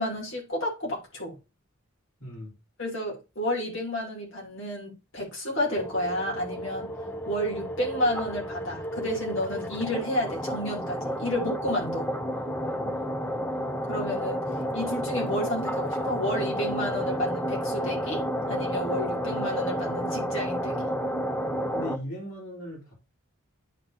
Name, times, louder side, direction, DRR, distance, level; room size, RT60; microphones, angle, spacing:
voice 1, 0.0-1.4 2.8-6.9 7.3-12.1 13.9-14.4 14.7-20.8, equal, 60° left, 2.6 m, -31 dB
voice 2, 2.2-2.5 12.6-13.0 21.7-22.9, left 1 dB, 80° left, 3.4 m, -38 dB
sound 1, 5.8-22.0, equal, 10° left, 0.6 m, -31 dB
10.5 x 3.9 x 2.6 m
head